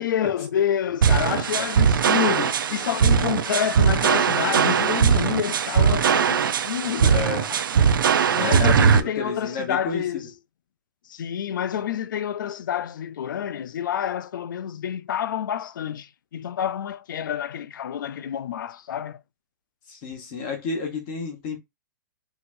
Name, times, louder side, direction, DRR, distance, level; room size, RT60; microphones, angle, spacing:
voice 1, 0.0-8.0 8.3-10.3 11.1-19.2, left 9 dB, 70° left, 0.4 m, -28 dB
sound 1, 1.0-9.0, right 7 dB, 85° right, 0.5 m, -20 dB
voice 2, 7.0-7.5 8.3-10.0 19.9-21.6, left 4 dB, 25° left, 1.1 m, -31 dB
4.3 x 2.8 x 2.5 m
hypercardioid pair, 165°, 11 cm